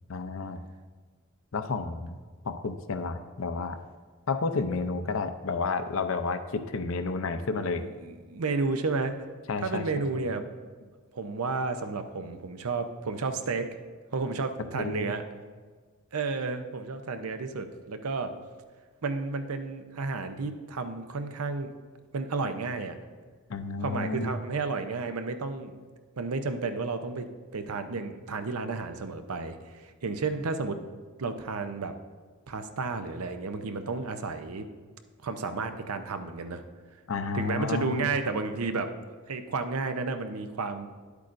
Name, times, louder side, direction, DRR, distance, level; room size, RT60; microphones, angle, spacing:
voice 1, 0.1-0.6 1.5-2.2 2.4-3.8 4.3-7.8 9.5-9.8 14.7-15.1 23.5-24.4 37.1-38.1, left 4 dB, 65° left, 9 dB, 0.5 m, -31 dB
voice 2, 8.0-9.2 9.6-10.4 11.1-13.8 14.1-15.2 16.1-18.3 19.0-21.7 22.1-23.0 23.8-25.8 26.2-30.8 31.2-31.9 32.5-34.7 35.2-36.6 37.3-38.9 39.3-40.9, right 4 dB, 85° right, 8 dB, 0.6 m, -32 dB
10.5 x 8.3 x 2.5 m, 1.5 s
head